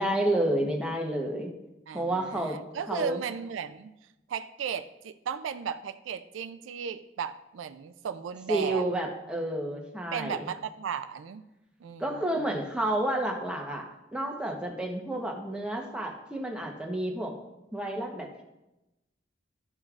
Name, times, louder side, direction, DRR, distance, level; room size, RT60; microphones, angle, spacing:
voice 1, 0.0-1.5 1.9-2.6 2.9-3.2 8.5-10.5 12.0-17.4 17.7-18.4, right 1 dB, 5° right, 0 dB, 0.9 m, -30 dB
voice 2, 1.9-3.9 4.3-8.8 10.1-11.4 11.8-12.2 12.5-12.6, right 7 dB, 90° right, 10 dB, 0.4 m, -35 dB
12.0 x 5.2 x 2.4 m, 0.95 s
head